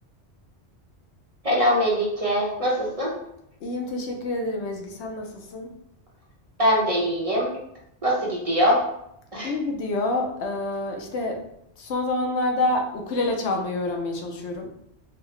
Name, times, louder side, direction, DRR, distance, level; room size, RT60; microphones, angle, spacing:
voice 1, 1.4-3.1 6.6-7.5 8.0-8.8 9.3-9.5, equal, 35° right, -4 dB, 0.8 m, -22 dB
voice 2, 3.6-5.7 9.4-11.4 11.8-14.7, left 2 dB, 80° left, 2 dB, 0.9 m, -27 dB
4.5 x 2.1 x 3.0 m, 0.77 s
omnidirectional pair, 1.2 m